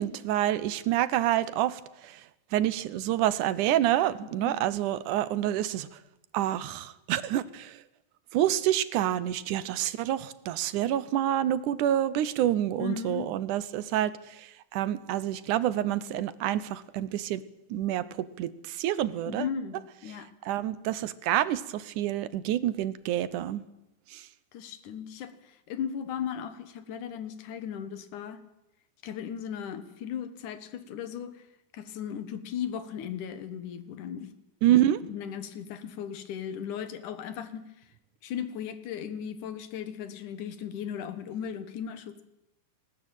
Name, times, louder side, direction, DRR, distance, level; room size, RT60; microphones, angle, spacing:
voice 1, 0.0-2.2 2.5-5.9 6.3-7.8 8.3-17.4 17.7-19.5 20.5-23.6 24.1-24.3 34.6-35.0, right 12 dB, 85° right, 16 dB, 2.4 m, -28 dB
voice 2, 12.8-13.3 19.3-20.3 24.5-28.4 29.0-31.4 31.7-34.3 34.7-37.6 38.2-42.2, left 8 dB, 80° left, 11 dB, 2.9 m, -37 dB
19.5 x 18.5 x 9.0 m, 0.91 s
omnidirectional pair, 3.5 m